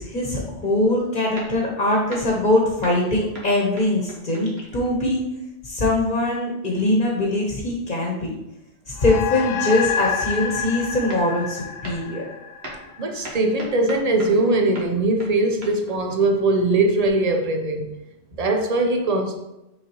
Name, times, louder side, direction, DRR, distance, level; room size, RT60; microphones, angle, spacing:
voice 1, 0.0-5.2 5.6-8.3 8.9-12.3, left 1 dB, 45° left, -2 dB, 1.2 m, -22 dB
sound 1, 0.6-0.9 1.4-2.5 2.8-5.2 10.7-10.8 11.1-11.5 11.8-12.2 12.6-14.5 14.7-17.1, right 1 dB, 65° right, 1.7 m, -41 dB
sound 2, 9.0-13.7, left 7 dB, 85° left, 0.9 m, -29 dB
voice 2, 13.0-17.9 18.3-19.3, right 2 dB, 40° right, 4 dB, 0.8 m, -21 dB
6.5 x 4.8 x 3.1 m, 0.93 s
omnidirectional pair, 1.1 m